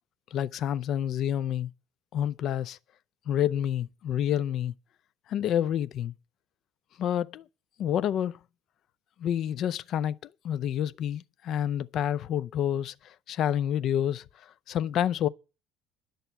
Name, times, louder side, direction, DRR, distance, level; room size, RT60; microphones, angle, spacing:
voice 1, 0.3-1.7 2.1-2.8 3.3-4.7 5.3-6.1 7.0-7.5 7.8-8.4 9.2-15.3, left 10 dB, 50° left, 0.6 m, -28 dB
11.0 x 6.7 x 8.2 m
figure-of-eight pair, 60°, 0 cm